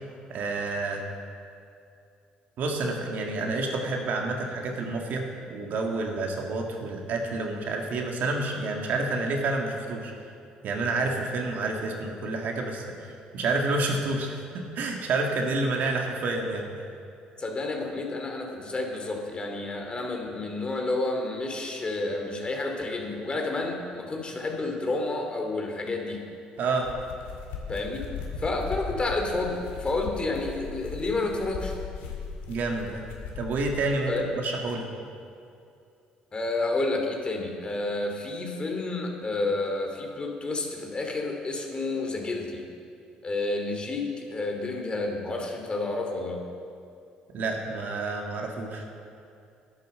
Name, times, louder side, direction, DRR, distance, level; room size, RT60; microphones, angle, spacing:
voice 1, 0.3-1.0 2.6-10.1 10.6-16.7 26.6-26.9 32.5-33.0 33.4-34.9 47.3-48.8, right 3 dB, 60° right, 1 dB, 1.9 m, -29 dB
voice 2, 17.4-26.2 27.7-28.1 28.4-31.7 34.1-34.3 36.3-42.6 43.2-46.4, left 2 dB, 30° left, 2 dB, 2.6 m, -30 dB
sound 1, 26.6-33.8, left 6 dB, 80° left, 2.1 m, -38 dB
11.5 x 9.3 x 6.6 m, 2.5 s
hypercardioid pair, 60°, 3 cm